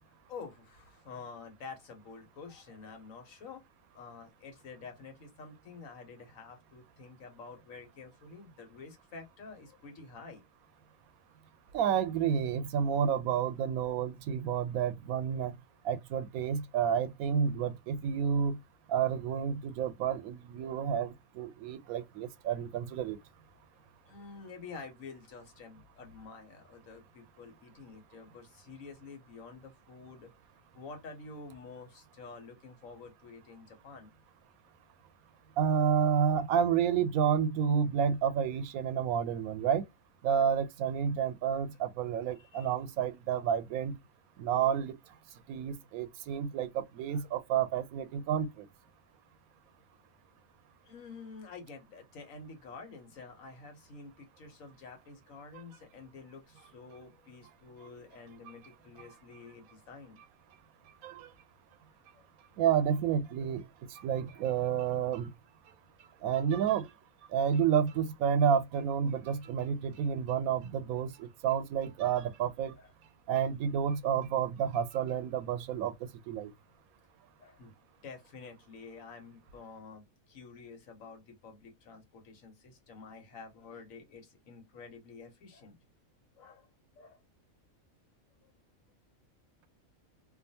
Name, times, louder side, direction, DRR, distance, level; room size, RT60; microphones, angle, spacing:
voice 1, 0.3-3.6 3.9-10.4 23.7-30.3 30.7-34.1 42.4-42.7 50.8-60.2 62.1-62.3 64.3-64.4 72.7-72.9 77.4-77.7 78.0-85.8 86.3-86.7 86.9-87.2 88.4-88.5, left 4 dB, 75° left, 1.3 m, -49 dB
voice 2, 11.7-15.5 15.8-18.6 18.9-23.2 35.6-39.8 40.2-44.0 44.4-44.9 45.5-48.7 61.0-61.3 62.6-63.6 63.9-65.3 66.2-66.9 67.3-72.7 73.3-75.9 76.3-76.5, right 8 dB, 90° right, 1.0 m, -30 dB
2.6 x 2.4 x 2.7 m
omnidirectional pair, 1.4 m